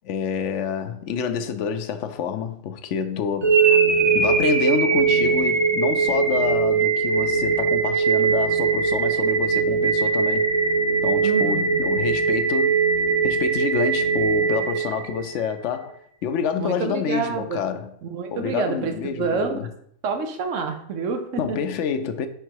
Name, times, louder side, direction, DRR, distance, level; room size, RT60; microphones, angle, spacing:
voice 1, 0.0-3.8 4.1-10.5 11.0-12.8 13.2-17.9 18.3-19.7 21.4-22.3, left 7 dB, 75° left, 0.9 m, -28 dB
sound 1, 3.4-15.5, right 5 dB, 30° right, 0.5 m, -21 dB
voice 2, 11.2-11.8 16.6-17.6 18.0-19.6 20.0-21.6, right 5 dB, 85° right, 1.2 m, -28 dB
4.8 x 4.7 x 4.6 m
omnidirectional pair, 1.2 m